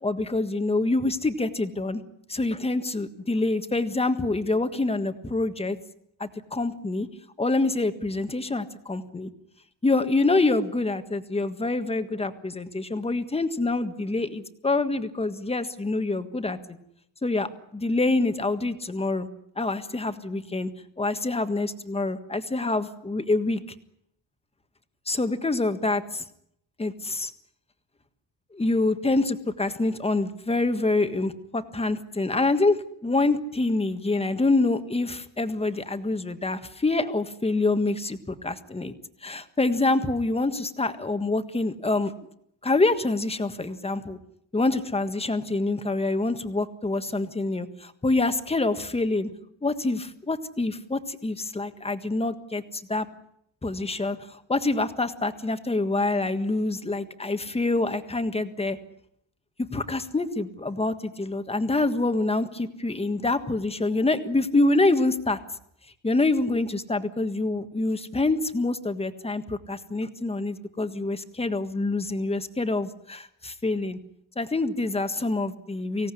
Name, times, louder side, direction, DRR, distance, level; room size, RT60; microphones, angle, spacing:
voice 1, 0.0-2.0 2.3-5.8 6.2-7.1 7.4-9.3 9.8-16.8 17.2-19.3 19.6-20.7 21.0-23.6 25.1-26.2 26.8-27.3 28.5-38.9 39.2-42.1 42.6-44.2 44.5-49.3 49.6-53.1 53.6-58.8 59.7-65.4 66.0-74.0 74.3-76.1, left 2 dB, 15° left, 9 dB, 1.5 m, -26 dB
25.0 x 17.5 x 9.9 m, 0.74 s
cardioid pair, 165°, 46 cm